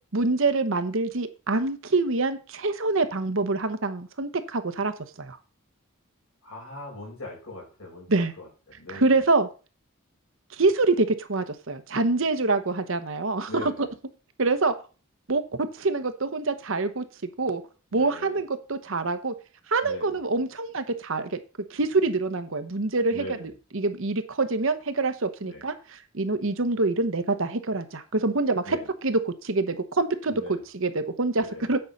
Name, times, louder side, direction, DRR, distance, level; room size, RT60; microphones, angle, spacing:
voice 1, 0.1-5.4 8.1-8.3 8.9-9.5 10.5-13.7 14.4-14.7 15.3-17.0 17.4-17.6 17.9-19.3 19.7-21.4 21.7-28.8 29.0-30.4 30.7-31.8, right 3 dB, 60° right, 10 dB, 1.0 m, -25 dB
voice 2, 6.4-9.2 13.5-13.9 17.9-18.4 19.8-20.2 23.1-23.5 25.4-25.6 28.6-28.9 30.3-30.6 31.3-31.7, left 1 dB, 75° left, -1 dB, 5.4 m, -40 dB
8.9 x 5.7 x 5.3 m, 0.34 s
head